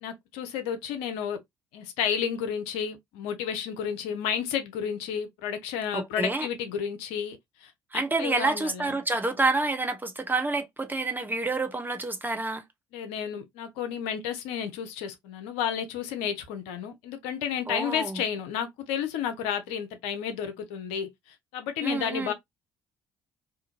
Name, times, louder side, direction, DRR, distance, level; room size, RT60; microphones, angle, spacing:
voice 1, 0.0-1.4 1.7-9.0 12.9-22.3, left 8 dB, 70° left, 0.6 m, -32 dB
voice 2, 5.9-6.5 7.9-12.6 17.7-18.2 21.8-22.3, right 3 dB, 15° right, 0.7 m, -28 dB
2.5 x 2.4 x 2.8 m
figure-of-eight pair, 50°, 11 cm